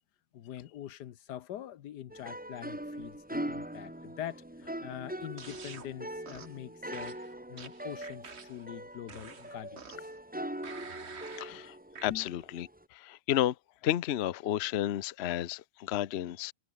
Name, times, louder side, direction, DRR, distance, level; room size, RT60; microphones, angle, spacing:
voice 1, 0.3-4.4 4.8-7.1 7.5-9.8 11.5-11.6 12.1-12.3, left 11 dB, 85° left, 1.5 m, -43 dB
sound 1, 2.1-12.8, right 1 dB, 5° right, 1.5 m, -42 dB
sound 2, 5.4-5.9 6.3-6.6 6.9-8.7 9.1-10.2 10.6-11.5 12.0-12.1, right 5 dB, 40° right, 1.7 m, -48 dB
voice 2, 11.4-11.7 12.0-12.7 13.0-13.5 13.8-16.5, left 12 dB, 55° left, 0.7 m, -31 dB
omnidirectional pair, 1.8 m